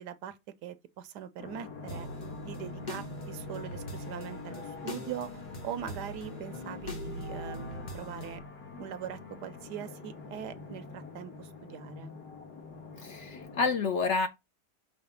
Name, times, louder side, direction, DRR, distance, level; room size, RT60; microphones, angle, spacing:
voice 1, 0.0-2.1 2.4-8.4 8.8-12.1, right 9 dB, 85° right, 1.3 m, -42 dB
sound 1, 1.4-13.8, left 4 dB, 75° left, 2.9 m, -45 dB
sound 2, 1.9-8.4, equal, 30° left, 1.2 m, -42 dB
voice 2, 13.0-14.3, left 4 dB, 60° left, 0.8 m, -29 dB
5.9 x 3.5 x 5.5 m
omnidirectional pair, 1.8 m